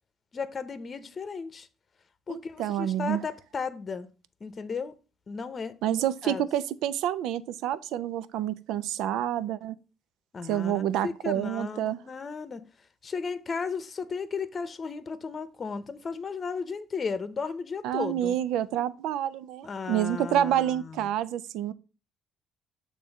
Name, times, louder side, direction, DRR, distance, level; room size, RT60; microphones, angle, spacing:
voice 1, 0.3-1.7 2.3-4.1 4.4-4.9 5.3-6.0 6.2-6.4 10.3-12.6 13.0-18.4 19.6-21.1, left 5 dB, 40° left, 0.8 m, -35 dB
voice 2, 2.3-3.2 5.8-9.8 10.5-12.0 17.8-21.7, right 11 dB, 80° right, 0.4 m, -28 dB
7.0 x 3.2 x 5.3 m
supercardioid pair, 85°, 0 cm